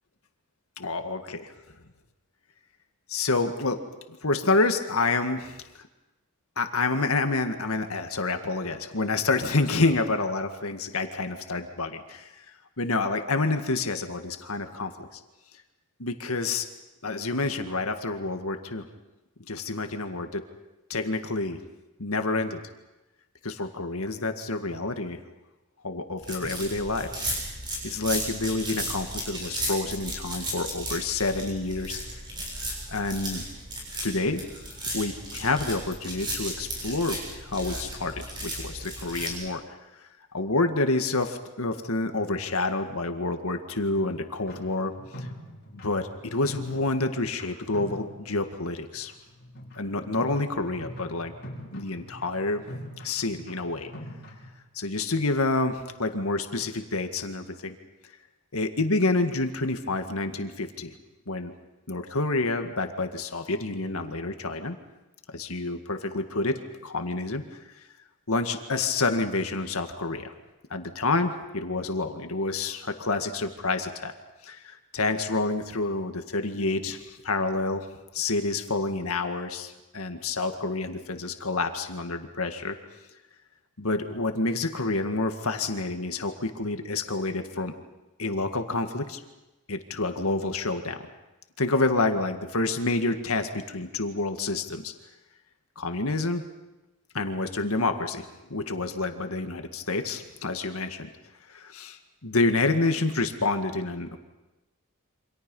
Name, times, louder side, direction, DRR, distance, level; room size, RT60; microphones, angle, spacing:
voice 1, 0.8-1.5 3.1-3.8 4.1-5.9 6.6-12.4 12.8-15.1 16.0-16.7 17.0-18.8 19.5-20.4 20.9-21.6 22.0-22.6 23.4-25.2 25.8-27.1 27.8-32.0 32.9-33.4 34.0-34.4 34.9-39.8 40.3-45.3 45.7-49.1 49.8-51.3 51.7-52.6 53.0-53.9 54.7-57.8 58.5-60.9 61.3-61.5 61.9-64.8 65.3-67.4 68.3-70.3 70.7-74.1 74.4-77.9 78.1-82.8 83.8-87.7 88.2-89.2 89.7-91.1 91.6-94.9 95.8-96.4 97.1-101.1 101.5-104.2, left 3 dB, 80° left, 6 dB, 1.9 m, -28 dB
sound 1, 26.2-39.3, right 1 dB, 20° right, 7.3 m, -35 dB
sound 2, 44.4-47.4 47.7-48.6 48.9-54.5, equal, 50° left, 6.1 m, -43 dB
28.5 x 26.0 x 5.5 m, 1.0 s
head